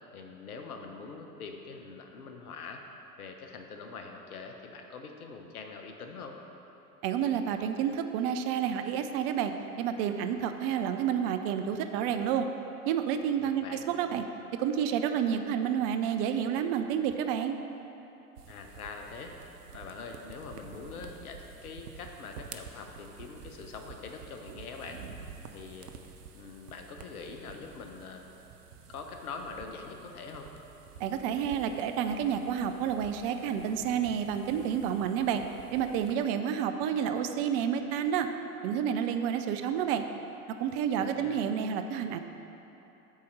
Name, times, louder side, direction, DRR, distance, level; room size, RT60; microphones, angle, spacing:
voice 1, 0.1-2.8 3.2-6.4 13.4-13.8 18.5-19.3 19.7-25.0 25.5-25.9 26.3-28.3 28.9-30.5 41.0-41.4, left 4 dB, 70° left, 4 dB, 1.0 m, -44 dB
voice 2, 7.0-9.5 9.8-12.5 12.9-14.2 14.6-17.6 31.0-35.4 35.7-38.3 38.6-40.0 40.6-42.2, right 8 dB, 40° right, 7 dB, 0.5 m, -29 dB
sound 1, 18.4-36.2, right 6 dB, 85° right, 0.6 m, -50 dB
8.6 x 4.2 x 6.3 m, 3.0 s
figure-of-eight pair, 85°, 46 cm